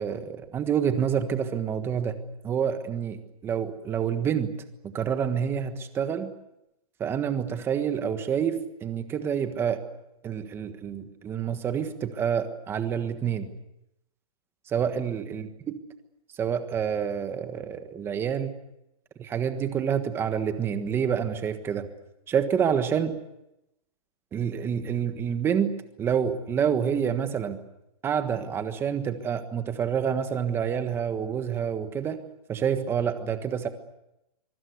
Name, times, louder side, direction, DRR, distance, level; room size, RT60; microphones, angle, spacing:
voice 1, 0.0-2.2 2.4-4.5 4.8-6.3 7.0-9.8 10.2-13.5 14.7-15.8 16.4-18.5 19.2-21.9 22.3-23.1 24.3-25.7 26.0-27.6 28.0-32.2 32.5-33.7, right 8 dB, 10° right, 9 dB, 1.4 m, -28 dB
24.5 x 23.5 x 8.2 m, 0.88 s
hypercardioid pair, 170°, 19 cm